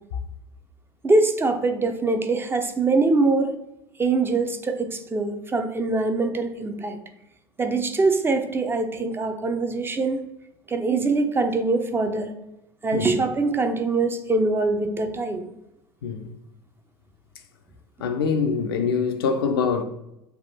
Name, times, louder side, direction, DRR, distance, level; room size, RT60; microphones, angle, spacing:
voice 1, 1.0-3.5 4.0-7.0 7.6-10.2 10.7-12.3 12.8-15.5, right 3 dB, 15° right, 0.5 m, -23 dB
voice 2, 18.0-19.8, left 5 dB, 70° left, 0.5 m, -24 dB
3.4 x 2.5 x 4.0 m
figure-of-eight pair, 70°, 13 cm